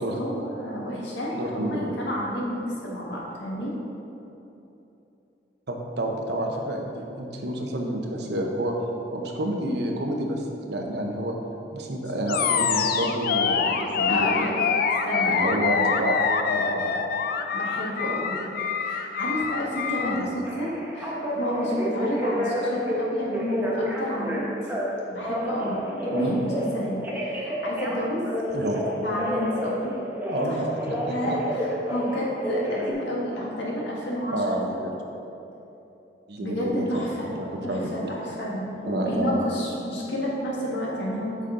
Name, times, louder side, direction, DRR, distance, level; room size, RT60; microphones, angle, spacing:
voice 1, 0.0-3.7 14.1-14.5 15.0-15.4 17.5-18.4 18.7-24.7 25.1-25.8 26.0-28.2 29.0-29.9 30.4-30.6 31.0-34.7 36.4-37.3 37.6-41.5, equal, 80° left, -4 dB, 1.7 m, -30 dB
voice 2, 1.3-1.8 5.7-8.7 9.1-11.4 11.7-14.3 15.3-16.2 16.5-17.0 20.0-20.3 26.1-26.4 28.5-28.8 30.3-31.2 34.3-34.9 36.3-36.6 36.9-37.8 38.9-39.4, right 1 dB, 65° right, 1 dB, 0.9 m, -29 dB
Animal, 12.3-20.2, left 6 dB, 55° left, 0.4 m, -25 dB
Telephone, 20.4-23.0 23.3-24.8 25.2-26.7 27.0-30.5 30.8-32.9, equal, 10° right, 1.0 m, -30 dB
8.1 x 5.6 x 3.8 m, 2.9 s
head